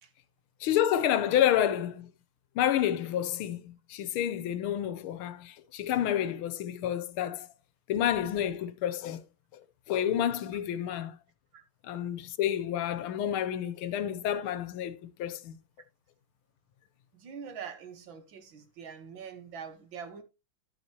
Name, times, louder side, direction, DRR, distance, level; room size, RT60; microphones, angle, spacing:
voice 1, 0.6-2.1 2.5-7.5 7.9-9.2 9.9-11.2 11.8-15.6, left 10 dB, 85° left, 1.6 m, -29 dB
voice 2, 17.1-20.2, right 7 dB, 65° right, 1.9 m, -44 dB
11.5 x 7.3 x 2.9 m
omnidirectional pair, 2.3 m